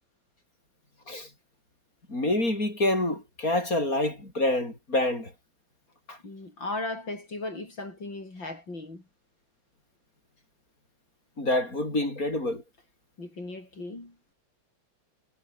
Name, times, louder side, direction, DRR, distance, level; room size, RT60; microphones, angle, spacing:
voice 1, 2.1-5.3 6.1-6.2 11.4-12.6, left 1 dB, 40° left, 8.3 m, -27 dB
voice 2, 6.2-9.0 13.2-14.2, left 2 dB, 60° left, 7.6 m, -37 dB
omnidirectional pair, 2.3 m